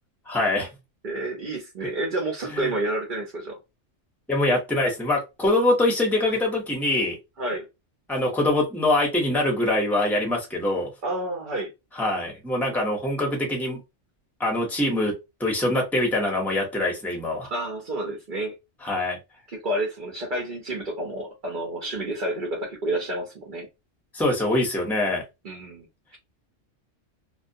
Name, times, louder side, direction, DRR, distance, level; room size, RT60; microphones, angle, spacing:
voice 1, 0.3-0.7 2.5-2.7 4.3-7.2 8.1-10.9 12.0-13.8 14.4-15.1 15.4-17.5 18.8-19.2 24.1-25.2, left 1 dB, ahead, 0.6 m, -24 dB
voice 2, 1.0-3.6 7.4-7.7 11.0-11.7 17.5-18.5 19.5-23.7 25.4-25.9, right 1 dB, 50° right, 0.7 m, -29 dB
2.2 x 2.2 x 2.6 m
omnidirectional pair, 1.3 m